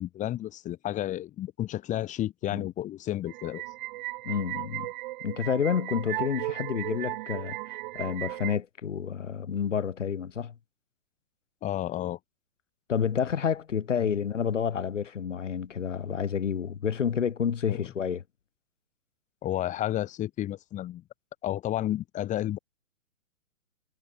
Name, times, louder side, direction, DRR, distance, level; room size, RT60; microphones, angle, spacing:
voice 1, 0.0-3.6 11.6-12.2 14.0-14.1 17.7-17.9 19.4-21.0 21.4-22.6, left 13 dB, 20° left, 3.2 m, -31 dB
sound 1, 3.3-8.6, right 19 dB, 40° right, 4.6 m, -36 dB
voice 2, 4.2-4.9 5.2-7.6 7.9-10.6 12.9-18.2, left 7 dB, 70° left, 5.0 m, -29 dB
hypercardioid pair, 135°, 38 cm